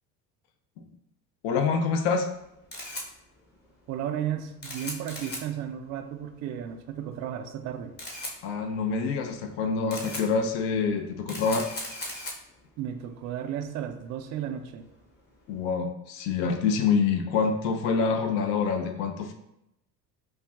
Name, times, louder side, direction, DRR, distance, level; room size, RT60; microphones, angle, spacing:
voice 1, 1.4-2.3 8.4-11.7 15.5-19.3, left 5 dB, 55° left, 6 dB, 0.6 m, -26 dB
Camera, 2.3-15.7, left 1 dB, 20° left, 0.9 m, -42 dB
voice 2, 3.9-8.0 12.8-14.9, right 9 dB, 40° right, 7 dB, 0.4 m, -34 dB
4.6 x 2.4 x 2.4 m, 0.83 s
hypercardioid pair, 65°, 48 cm